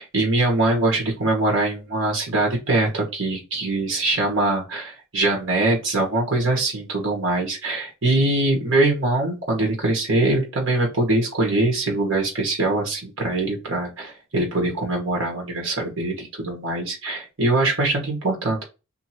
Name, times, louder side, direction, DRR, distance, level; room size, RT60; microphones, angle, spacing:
voice 1, 0.0-18.6, right 2 dB, 60° right, 0 dB, 1.1 m, -23 dB
2.7 x 2.5 x 2.8 m, 0.28 s
head